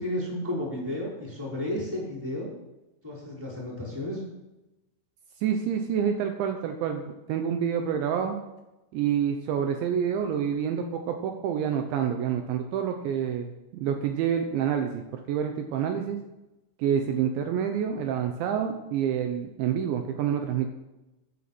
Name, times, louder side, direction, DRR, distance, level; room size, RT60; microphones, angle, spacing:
voice 1, 0.0-2.5 3.0-4.2, left 1 dB, 5° right, -5 dB, 5.0 m, -32 dB
voice 2, 5.4-8.4 8.9-16.2 16.8-20.7, right 8 dB, 75° right, 5 dB, 3.1 m, -28 dB
15.0 x 9.6 x 6.0 m, 0.99 s
omnidirectional pair, 5.5 m